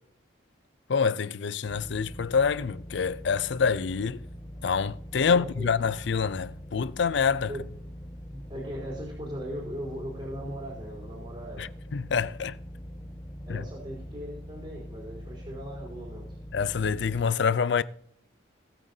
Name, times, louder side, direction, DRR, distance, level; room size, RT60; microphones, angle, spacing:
voice 1, 0.9-4.2 4.6-7.5 11.6-12.6 13.5-13.6 16.5-17.8, left 6 dB, 65° left, 0.5 m, -26 dB
sound 1, 1.6-17.2, equal, 20° left, 1.6 m, -43 dB
voice 2, 5.2-5.7 7.5-7.6 8.3-11.7 13.5-16.4, equal, 30° right, 4.0 m, -39 dB
19.0 x 8.7 x 2.7 m
head